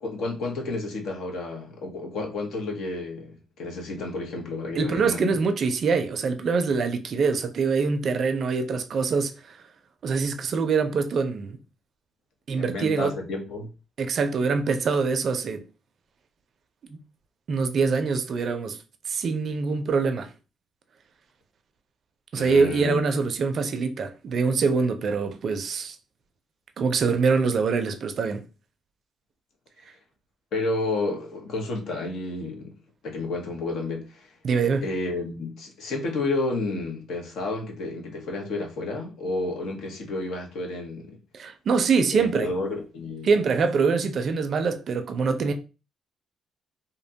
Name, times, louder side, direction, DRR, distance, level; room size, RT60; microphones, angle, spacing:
voice 1, 0.0-5.3 12.6-13.7 22.4-23.0 30.5-32.7 33.0-34.3 34.8-41.2 42.1-43.3, left 2 dB, 80° left, 0.8 m, -31 dB
voice 2, 4.8-9.6 10.0-11.6 12.5-13.1 14.0-15.6 17.5-18.8 19.1-20.3 22.3-26.0 26.8-28.5 34.4-34.8 41.3-42.5 43.2-45.5, right 5 dB, 55° right, 0.4 m, -24 dB
2.6 x 2.1 x 2.6 m
cardioid pair, 90°, 0 cm